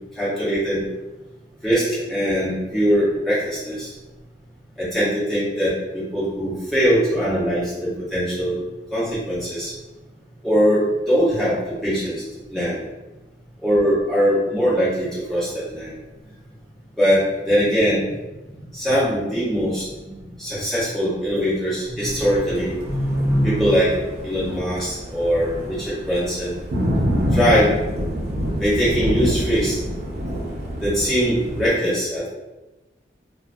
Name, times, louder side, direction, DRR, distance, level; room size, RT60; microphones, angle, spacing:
voice 1, 0.2-0.8 1.6-3.9 4.8-8.5 8.9-9.7 10.4-10.8 11.1-11.6 11.8-12.2 12.5-12.8 13.6-15.9 17.0-17.2 17.5-18.1 18.7-20.1 20.4-23.9 24.2-26.6 27.3-27.7 28.6-29.8 30.8-32.3, equal, ahead, -12 dB, 1.0 m, -21 dB
Thunder, 22.0-31.7, equal, 65° right, 0.6 m, -27 dB
2.3 x 2.1 x 2.5 m, 1.1 s
head